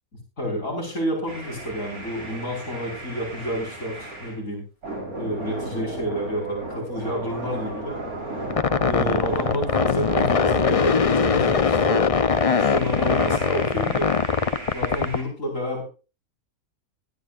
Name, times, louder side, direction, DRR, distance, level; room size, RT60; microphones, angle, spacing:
voice 1, 0.4-4.6 5.1-8.0 8.9-12.0 12.4-14.1 14.7-15.8, equal, 65° left, 0 dB, 5.5 m, -29 dB
sound 1, 1.3-4.4 4.8-11.5 12.2-15.2, right 2 dB, 90° right, 4.8 m, -35 dB
sound 2, 8.5-15.2, left 5 dB, 35° left, 0.6 m, -21 dB
19.5 x 12.5 x 2.5 m, 0.33 s
omnidirectional pair, 1.5 m